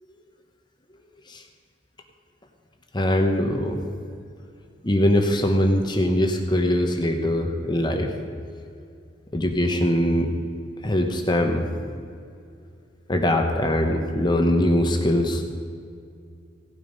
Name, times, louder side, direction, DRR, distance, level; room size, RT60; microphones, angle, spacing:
voice 1, 2.9-3.8 4.8-8.1 9.3-10.3 10.8-11.7 13.1-15.4, left 1 dB, 25° left, 4 dB, 1.0 m, -22 dB
16.5 x 8.4 x 5.4 m, 2.4 s
head